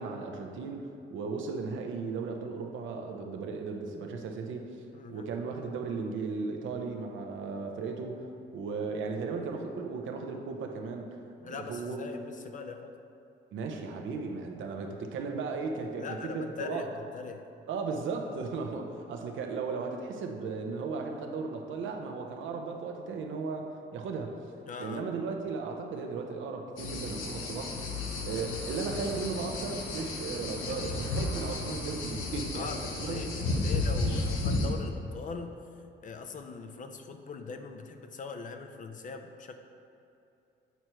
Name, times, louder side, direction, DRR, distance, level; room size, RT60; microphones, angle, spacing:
voice 1, 0.0-4.6 5.1-8.3 8.5-11.2 11.5-12.0 13.5-16.8 17.7-24.4 24.8-27.7 28.2-33.3, right 4 dB, 75° right, 3 dB, 0.7 m, -36 dB
voice 2, 4.9-5.3 11.4-12.9 16.0-17.5 24.6-25.0 30.5-31.0 32.5-35.6 36.0-39.6, left 5 dB, 40° left, 6 dB, 0.5 m, -41 dB
sound 1, 26.8-34.7, left 2 dB, 85° left, 0.9 m, -33 dB
8.1 x 4.4 x 3.0 m, 2.7 s
cardioid pair, 90°, 20 cm